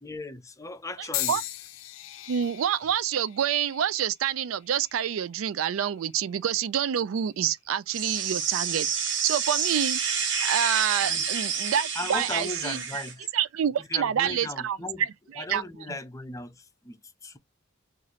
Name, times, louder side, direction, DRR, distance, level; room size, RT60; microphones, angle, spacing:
voice 1, 0.0-1.4 11.0-11.3 11.9-13.3 13.8-15.1 15.4-17.4, left 2 dB, 15° left, 0.5 m, -37 dB
voice 2, 1.0-1.4 2.3-10.0 10.4-13.0 13.3-15.1 15.4-15.6, right 9 dB, 90° right, 0.4 m, -27 dB
sound 1, 1.1-5.3 6.0-6.4 7.4-7.6, left 14 dB, 75° left, 0.4 m, -38 dB
sound 2, 7.9-13.1, right 6 dB, 65° right, 0.9 m, -29 dB
3.1 x 2.5 x 4.0 m
head